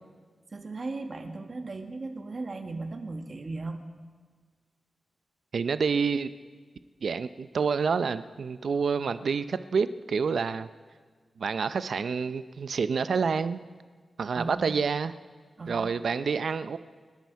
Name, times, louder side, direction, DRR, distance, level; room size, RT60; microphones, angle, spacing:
voice 1, 0.5-3.8 14.3-14.8 15.6-15.9, right 3 dB, 45° right, 6 dB, 1.6 m, -37 dB
voice 2, 5.5-6.3 7.0-10.7 11.4-13.6 14.2-15.1 15.7-16.8, right 5 dB, 70° right, 13 dB, 0.5 m, -28 dB
27.5 x 10.5 x 4.7 m, 1.5 s
wide cardioid pair, 115°, 0 cm